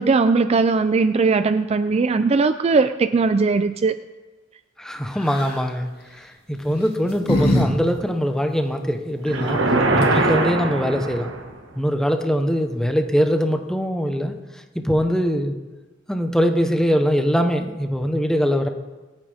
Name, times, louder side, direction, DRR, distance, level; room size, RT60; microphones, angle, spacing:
voice 1, 0.0-4.0, right 4 dB, 35° right, 11 dB, 0.4 m, -19 dB
voice 2, 4.8-9.6 10.0-11.3 11.7-14.3 14.7-15.5 16.1-18.7, equal, 5° left, 5 dB, 1.0 m, -22 dB
sound 1, 5.2-5.6 6.6-7.7 8.0-8.1 9.7-9.8 10.0-10.4, left 1 dB, 55° left, 2.5 m, -23 dB
sound 2, 9.2-11.6, right 2 dB, 85° right, 1.6 m, -21 dB
26.5 x 8.9 x 3.5 m, 1.2 s
head